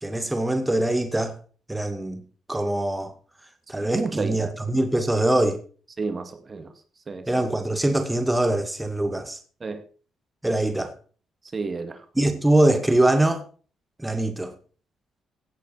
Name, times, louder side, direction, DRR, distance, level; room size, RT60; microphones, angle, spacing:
voice 1, 0.0-1.4 1.7-2.2 2.5-3.1 3.7-5.6 7.3-9.4 10.4-10.9 12.2-13.4 14.0-14.5, right 1 dB, 10° right, 2.0 m, -23 dB
voice 2, 3.8-4.5 6.0-6.7 7.1-7.2 9.6-9.8 11.5-12.0, right 4 dB, 35° right, 2.1 m, -30 dB
16.5 x 8.5 x 4.7 m
cardioid pair, 90°, 0 cm